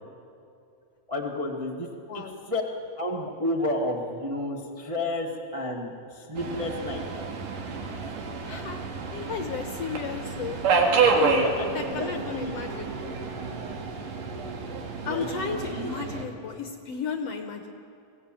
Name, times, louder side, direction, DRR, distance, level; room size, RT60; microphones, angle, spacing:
voice 1, 1.1-1.9 2.1-2.6 3.0-7.0 11.2-12.1 12.3-12.5 12.8-13.0 15.0-16.0, left 1 dB, 20° right, -1 dB, 0.8 m, -31 dB
Subway metro underground, 6.4-16.2, right 4 dB, 75° right, 3.4 m, -29 dB
voice 2, 8.5-8.8 9.1-10.6 11.0-11.4 11.7-12.9 15.1-17.7, left 5 dB, 65° left, 5 dB, 1.8 m, -34 dB
22.5 x 16.0 x 9.0 m, 2.6 s
omnidirectional pair, 3.8 m